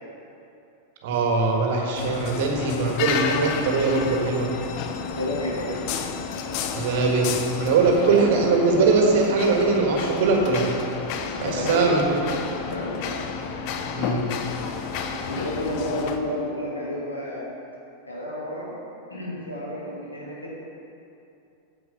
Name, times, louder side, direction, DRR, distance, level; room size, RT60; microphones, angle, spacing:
voice 1, 1.0-4.5 6.7-7.3 7.6-10.7 11.4-12.0 13.9-14.3, right 4 dB, 55° right, 1 dB, 1.7 m, -21 dB
sound 1, 1.9-16.2, left 6 dB, 45° left, 0.7 m, -31 dB
voice 2, 5.0-5.8 11.3-12.1 12.5-12.9 15.1-17.5 18.1-18.8 19.1-20.5, left 1 dB, 80° left, -5 dB, 2.6 m, -31 dB
9.3 x 7.9 x 5.4 m, 2.7 s
figure-of-eight pair, 90°, 0 cm